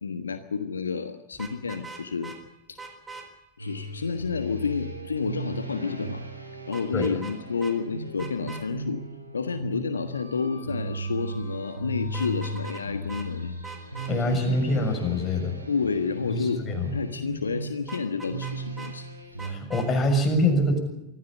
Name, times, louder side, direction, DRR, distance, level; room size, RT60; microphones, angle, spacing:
voice 1, 0.0-2.3 2.7-2.8 3.6-6.2 6.7-9.0 9.3-13.5 14.1-14.6 15.7-19.1, left 5 dB, 75° left, 9 dB, 1.3 m, -30 dB
Vehicle horn car horn honking, 1.3-2.4 2.8-3.3 6.7-7.4 7.6-7.7 8.2-8.6 12.1-12.8 13.1-13.3 13.6-14.1 17.9-18.9 19.4-19.9, right 3 dB, 10° right, 4.0 m, -41 dB
sound 1, 3.6-19.6, right 2 dB, 90° right, 4.5 m, -37 dB
voice 2, 14.1-15.6 16.3-16.9 19.4-20.8, left 1 dB, 20° left, 4 dB, 6.7 m, -25 dB
24.5 x 15.5 x 8.7 m, 0.94 s
figure-of-eight pair, 90°, 0 cm